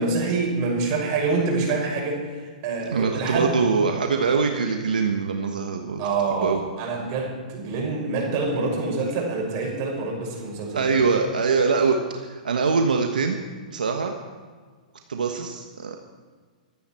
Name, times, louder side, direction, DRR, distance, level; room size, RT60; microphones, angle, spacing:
voice 1, 0.0-3.6 6.0-10.9, right 3 dB, 45° right, 0 dB, 5.9 m, -26 dB
voice 2, 2.9-6.0 6.3-6.6 10.7-13.4 13.7-14.1 15.1-16.0, right 4 dB, 90° right, 4 dB, 1.3 m, -23 dB
25.0 x 9.6 x 4.4 m, 1.5 s
hypercardioid pair, 130°, 4 cm